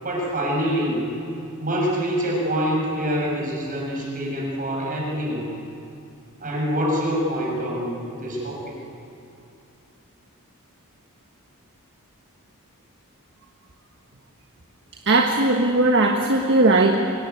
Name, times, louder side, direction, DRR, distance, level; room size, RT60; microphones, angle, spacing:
voice 1, 0.0-1.1 1.6-5.5 6.4-8.7, equal, 40° right, -2 dB, 6.6 m, -25 dB
voice 2, 15.1-16.9, right 2 dB, 55° right, 3 dB, 1.5 m, -18 dB
24.0 x 18.0 x 9.5 m, 2.7 s
head